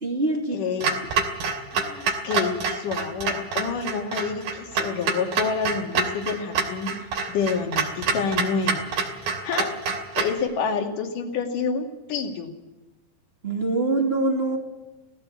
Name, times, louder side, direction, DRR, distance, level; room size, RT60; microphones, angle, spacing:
voice 1, 0.0-0.7 13.4-14.6, right 2 dB, 20° right, 1 dB, 2.1 m, -24 dB
voice 2, 0.5-1.0 1.7-6.9 7.3-8.8 9.4-9.7 10.2-12.5, left 5 dB, 50° left, 3 dB, 3.5 m, -28 dB
Clock, 0.8-10.4, right 4 dB, 55° right, 4.3 m, -27 dB
18.0 x 17.5 x 8.5 m, 1.1 s
omnidirectional pair, 5.2 m